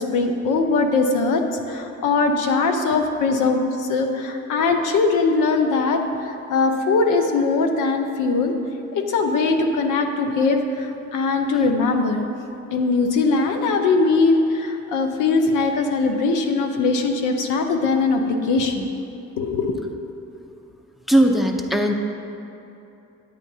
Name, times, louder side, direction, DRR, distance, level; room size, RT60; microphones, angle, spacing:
voice 1, 0.0-8.5 8.9-12.2 12.7-18.9 19.4-19.7, left 3 dB, 85° left, 5 dB, 0.8 m, -21 dB
voice 2, 21.1-21.9, right 1 dB, ahead, 4 dB, 0.5 m, -18 dB
9.6 x 8.9 x 2.7 m, 2.8 s
cardioid pair, 90°, 30 cm